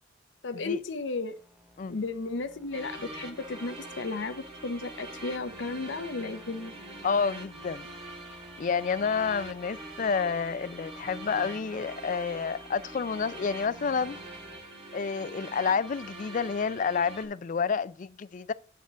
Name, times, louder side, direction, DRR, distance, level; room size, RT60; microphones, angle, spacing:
voice 1, 0.4-1.3 1.9-6.7, left 3 dB, 75° left, 0.7 m, -34 dB
sound 1, 1.2-14.6, left 1 dB, 5° right, 0.6 m, -54 dB
sound 2, 2.7-17.3, right 2 dB, 30° right, 1.7 m, -44 dB
voice 2, 7.0-7.9 8.6-14.2 14.9-18.5, left 5 dB, 45° left, 0.4 m, -29 dB
8.1 x 4.2 x 6.1 m
head